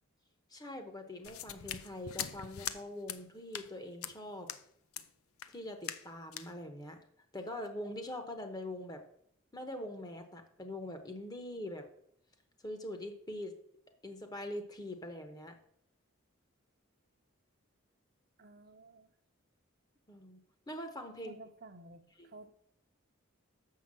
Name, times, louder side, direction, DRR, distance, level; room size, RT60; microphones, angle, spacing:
voice 1, 0.5-4.5 5.5-7.0 7.3-9.0 9.5-11.9 12.6-13.5 14.0-15.6 20.1-20.4 20.7-21.4 22.2-22.3, left 1 dB, 20° left, 6 dB, 0.9 m, -43 dB
sound 1, 1.2-2.8 3.1-3.2 3.5-3.7 4.0-4.1 4.5-4.6 4.9-5.1 5.4-5.5 5.8-6.1 6.3-6.5, left 10 dB, 80° left, 0.6 m, -41 dB
voice 2, 18.4-19.1 21.2-22.5, right 3 dB, 45° right, 6 dB, 0.8 m, -53 dB
7.0 x 5.7 x 7.5 m, 0.68 s
head